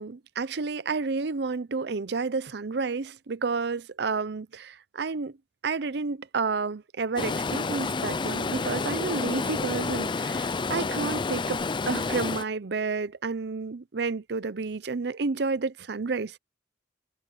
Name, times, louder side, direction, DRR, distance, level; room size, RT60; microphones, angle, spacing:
voice 1, 0.0-5.3 5.6-16.4, right 4 dB, 65° right, 0.6 m, -30 dB
Stream, 7.2-12.4, left 4 dB, 25° left, 0.5 m, -29 dB
head